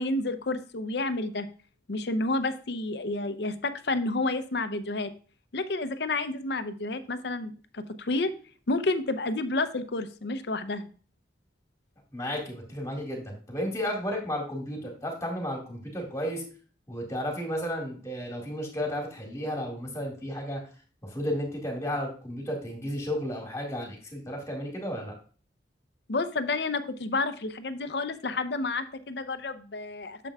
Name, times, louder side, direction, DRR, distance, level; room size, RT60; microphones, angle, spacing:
voice 1, 0.0-1.5 1.9-5.1 5.5-8.3 8.7-10.9 26.1-30.2, left 2 dB, 65° left, 11 dB, 0.6 m, -30 dB
voice 2, 12.1-16.4 16.9-20.6 21.0-25.1, equal, 15° left, 1 dB, 1.9 m, -33 dB
8.9 x 6.8 x 2.3 m, 0.40 s
head